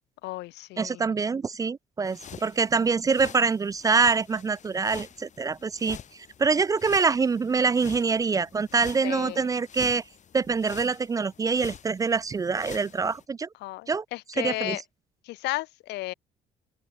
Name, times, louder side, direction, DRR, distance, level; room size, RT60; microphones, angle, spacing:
voice 1, 0.2-1.1 9.0-9.5 13.6-14.8 15.2-16.1, left 19 dB, 80° left, 0.8 m, -34 dB
voice 2, 0.8-6.0 6.4-10.0 10.3-13.5 13.9-14.0 14.4-14.8, right 4 dB, 20° right, 0.3 m, -25 dB
sound 1, 2.0-13.2, left 8 dB, 45° left, 2.6 m, -47 dB
open air
cardioid pair, 110°, 17 cm